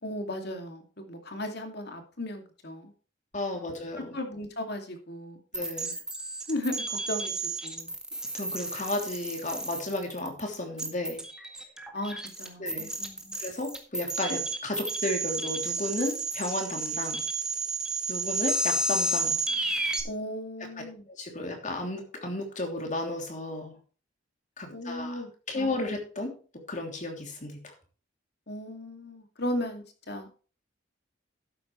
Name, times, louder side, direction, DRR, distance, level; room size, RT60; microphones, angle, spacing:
voice 1, 0.0-2.9 3.5-3.7 4.1-5.4 6.5-7.3 7.6-7.9 11.9-13.4 20.0-21.0 24.7-25.3 25.5-25.9 28.5-30.3, left 1 dB, 55° left, 5 dB, 2.5 m, -36 dB
voice 2, 3.3-4.1 5.5-5.9 8.3-11.2 12.6-12.9 13.4-17.2 18.1-19.4 21.2-23.7 24.6-25.2 25.5-26.3 26.7-27.7, left 2 dB, 40° left, 3 dB, 3.1 m, -33 dB
sound 1, 5.5-20.0, right 2 dB, 5° right, 1.7 m, -32 dB
12.5 x 9.6 x 3.2 m, 0.39 s
head